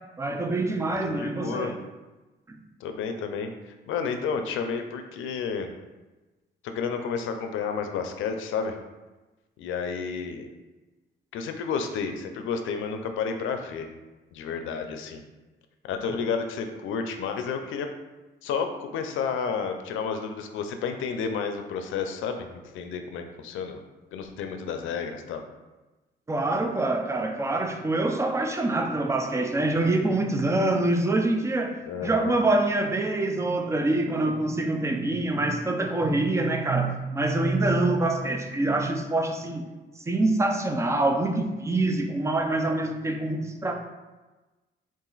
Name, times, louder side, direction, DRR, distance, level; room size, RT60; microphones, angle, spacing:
voice 1, 0.2-1.7 2.5-2.6 26.3-39.6 40.1-43.7, right 2 dB, 15° right, 4 dB, 0.5 m, -25 dB
voice 2, 1.0-1.7 2.8-5.7 6.6-8.8 9.6-10.5 11.3-13.9 14.3-15.2 15.8-17.9 18.4-23.8 24.1-25.4 31.8-32.4, left 6 dB, 85° left, 6 dB, 0.5 m, -31 dB
4.0 x 2.5 x 3.8 m, 1.1 s
cardioid pair, 90°, 20 cm